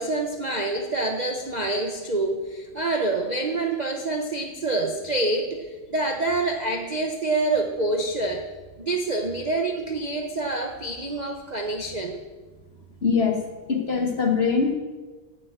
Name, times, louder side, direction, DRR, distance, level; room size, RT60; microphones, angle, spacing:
voice 1, 0.0-8.5 8.8-12.2, right 2 dB, 50° right, 3 dB, 0.5 m, -27 dB
voice 2, 13.0-13.4 13.7-14.8, left 5 dB, 40° left, 3 dB, 1.2 m, -22 dB
8.8 x 8.7 x 8.0 m, 1.3 s
omnidirectional pair, 2.1 m